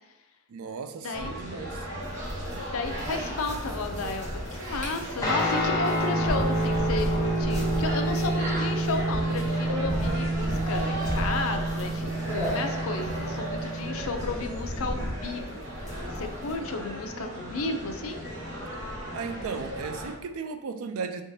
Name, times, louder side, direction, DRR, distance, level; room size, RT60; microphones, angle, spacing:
voice 1, 0.5-1.8 19.1-21.2, right 5 dB, 80° right, 0.4 m, -35 dB
voice 2, 1.0-1.4 2.7-18.2, left 3 dB, 75° left, 0.5 m, -33 dB
sound 1, 1.1-20.1, equal, 60° right, 0.9 m, -36 dB
sound 2, 2.0-16.5, equal, 35° right, 1.3 m, -36 dB
Guitar, 5.2-14.0, right 1 dB, 15° left, 0.8 m, -28 dB
4.6 x 3.5 x 2.7 m
head